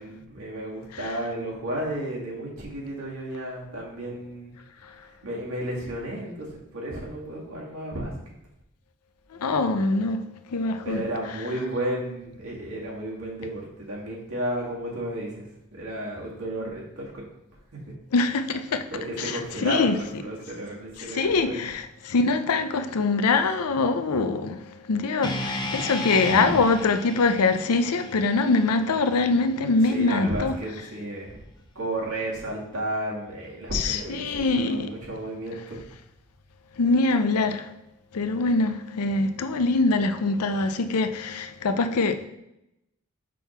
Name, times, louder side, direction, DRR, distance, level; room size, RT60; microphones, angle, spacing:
voice 1, 0.0-4.5 5.2-8.1 10.8-15.4 15.7-17.2 18.9-21.7 29.8-31.4 31.8-35.8, right 1 dB, 70° right, 2.1 m, -33 dB
voice 2, 9.4-10.2 10.5-11.0 18.1-18.8 19.2-19.9 21.1-30.6 33.7-34.9 36.8-37.7 38.1-42.3, left 3 dB, 85° left, 0.5 m, -23 dB
sound 1, 25.2-29.4, left 1 dB, 20° left, 0.6 m, -33 dB
6.1 x 3.6 x 5.8 m
head